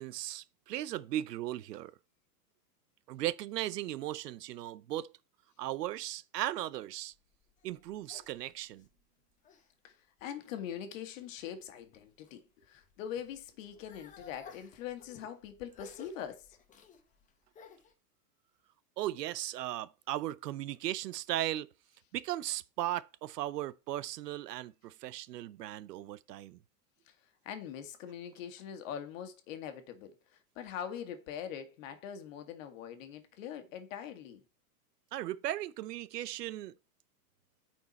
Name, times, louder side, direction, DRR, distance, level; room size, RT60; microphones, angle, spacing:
voice 1, 0.0-1.9 3.1-5.1 5.6-7.1 7.6-8.9 19.0-21.7 22.1-26.6 35.1-36.7, right 14 dB, 80° right, 0.7 m, -37 dB
sound 1, 7.1-9.7 10.2-10.8 11.4-12.4 12.8-17.9, left 6 dB, 15° left, 1.0 m, -56 dB
voice 2, 9.8-16.6 27.1-34.4, left 9 dB, 55° left, 1.7 m, -43 dB
9.2 x 4.5 x 4.2 m
supercardioid pair, 145°, 48 cm